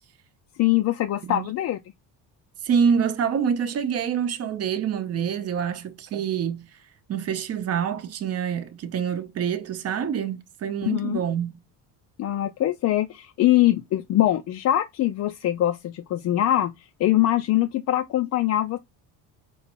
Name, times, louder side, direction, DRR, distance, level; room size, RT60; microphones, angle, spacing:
voice 1, 0.6-1.8 10.8-11.2 12.2-16.7 17.0-18.8, left 14 dB, 45° left, 0.4 m, -23 dB
voice 2, 2.6-6.7 7.1-11.6, right 7 dB, 40° right, 0.7 m, -26 dB
5.6 x 3.0 x 2.9 m
cardioid pair, 130°, 39 cm